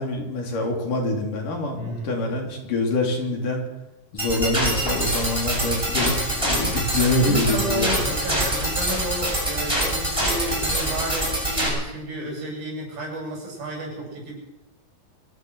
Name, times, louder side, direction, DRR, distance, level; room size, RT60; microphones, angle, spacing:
voice 1, 0.0-3.6 4.1-8.1, left 2 dB, 60° left, 1 dB, 4.8 m, -25 dB
voice 2, 1.7-2.2 7.0-14.3, right 1 dB, 70° right, -1 dB, 9.6 m, -32 dB
sound 1, 4.2-11.7, right 1 dB, 5° right, 7.9 m, -25 dB
24.5 x 17.0 x 6.4 m, 1.0 s
omnidirectional pair, 4.3 m